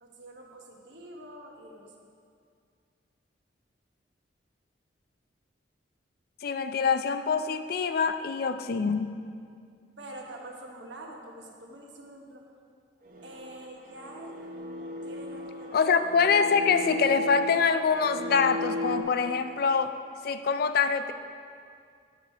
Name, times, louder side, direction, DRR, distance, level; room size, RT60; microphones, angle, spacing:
voice 1, 0.0-2.1 10.0-12.5 13.2-14.4 15.0-15.8, right 1 dB, 80° right, 0 dB, 1.1 m, -46 dB
voice 2, 6.4-9.2 15.7-19.9 20.2-21.1, left 5 dB, 55° left, 10 dB, 0.4 m, -25 dB
sound 1, 13.1-19.0, left 1 dB, 50° right, 0.8 m, -36 dB
9.3 x 6.5 x 4.3 m, 2.3 s
head